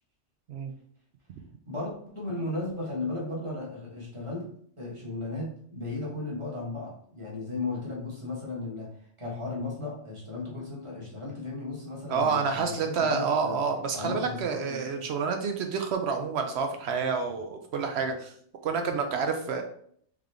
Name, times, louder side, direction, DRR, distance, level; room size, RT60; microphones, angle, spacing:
voice 1, 1.7-4.5 4.8-8.9 9.2-13.6 13.9-15.1, left 2 dB, 25° right, -4 dB, 1.3 m, -35 dB
voice 2, 12.1-18.3 18.6-19.6, right 5 dB, 70° right, 5 dB, 0.8 m, -28 dB
3.6 x 3.6 x 3.3 m, 0.62 s
omnidirectional pair, 1.2 m